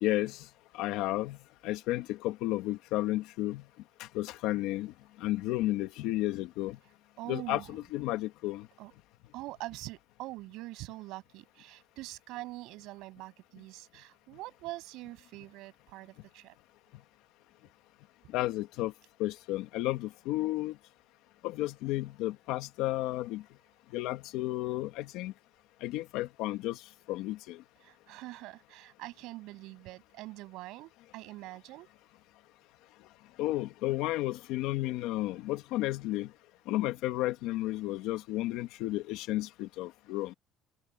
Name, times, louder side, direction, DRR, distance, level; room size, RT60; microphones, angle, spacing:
voice 1, 0.0-3.7 4.0-6.8 7.3-8.7 18.3-18.9 19.2-20.8 21.4-23.5 23.9-25.3 25.8-27.6 33.4-36.3 36.7-40.3, left 16 dB, 90° left, 1.9 m, -33 dB
voice 2, 7.2-7.6 8.8-8.9 9.3-16.5 27.8-31.9, right 19 dB, 75° right, 7.8 m, -44 dB
open air
cardioid pair, 165°, 0 cm